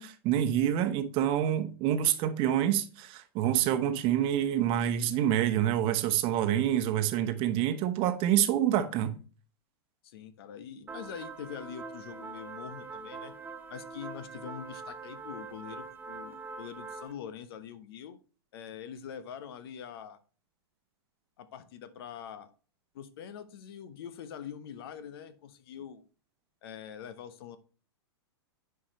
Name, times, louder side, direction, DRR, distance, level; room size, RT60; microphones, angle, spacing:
voice 1, 0.0-9.1, right 11 dB, 40° right, 1.0 m, -27 dB
voice 2, 10.0-13.3 13.7-18.2 18.5-20.2 21.4-22.5 22.9-26.0 26.6-27.6, left 8 dB, 60° left, 0.9 m, -44 dB
sound 1, 10.9-17.1, right 4 dB, 15° right, 0.9 m, -43 dB
9.8 x 4.8 x 3.1 m
hypercardioid pair, 110°, 14 cm